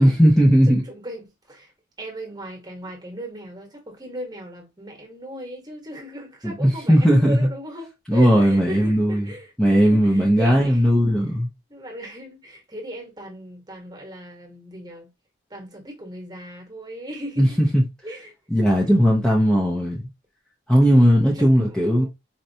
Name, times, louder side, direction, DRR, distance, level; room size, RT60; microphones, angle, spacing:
voice 1, 0.0-0.8 6.4-7.5 8.1-9.2 9.6-11.5 17.4-17.8 18.5-20.0 20.7-22.1, equal, 5° left, 0.6 m, -17 dB
voice 2, 0.7-1.7 2.0-10.8 11.7-15.1 15.5-17.6 18.0-18.3 20.8-22.1, right 1 dB, 20° right, 1.1 m, -37 dB
4.3 x 2.4 x 2.7 m
head